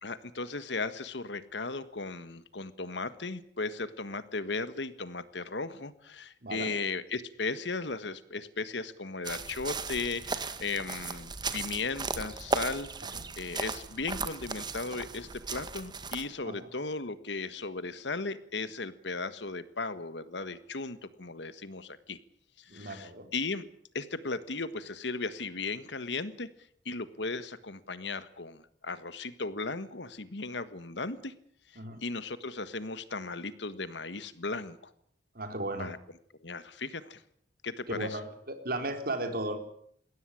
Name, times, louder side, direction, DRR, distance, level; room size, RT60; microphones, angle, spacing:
voice 1, 0.0-22.2 22.6-23.6 23.9-26.5 26.8-31.3 31.7-34.9 35.8-36.0 36.4-37.2 37.6-38.2, left 3 dB, 70° left, 13 dB, 1.5 m, -36 dB
sound 1, 9.2-16.3, right 4 dB, 25° right, 1.7 m, -36 dB
voice 2, 22.7-23.3 31.8-32.0 35.3-35.9 38.0-39.6, right 2 dB, 55° right, 7 dB, 3.9 m, -35 dB
21.5 x 17.0 x 9.9 m, 0.66 s
head